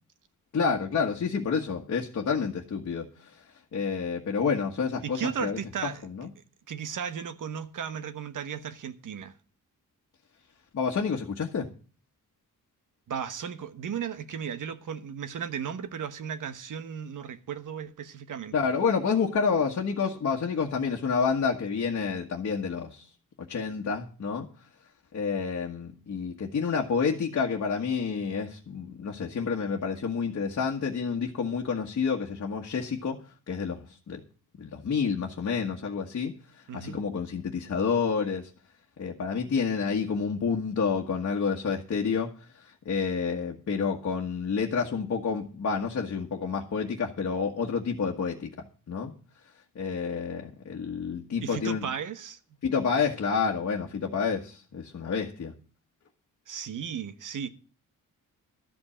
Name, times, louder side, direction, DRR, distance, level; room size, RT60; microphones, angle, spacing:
voice 1, 0.5-3.4 3.7-6.3 10.7-11.7 18.5-23.0 23.5-24.5 25.1-33.2 33.5-34.2 34.6-36.3 36.7-38.5 39.0-42.3 42.6-48.5 48.9-49.1 49.7-51.8 52.6-55.5, left 5 dB, 50° left, 1.5 m, -29 dB
voice 2, 5.0-6.1 6.7-9.3 13.1-18.5 36.7-37.0 51.4-52.4 56.5-57.5, right 7 dB, 65° right, 1.1 m, -35 dB
13.0 x 5.4 x 8.5 m
wide cardioid pair, 125°, 33 cm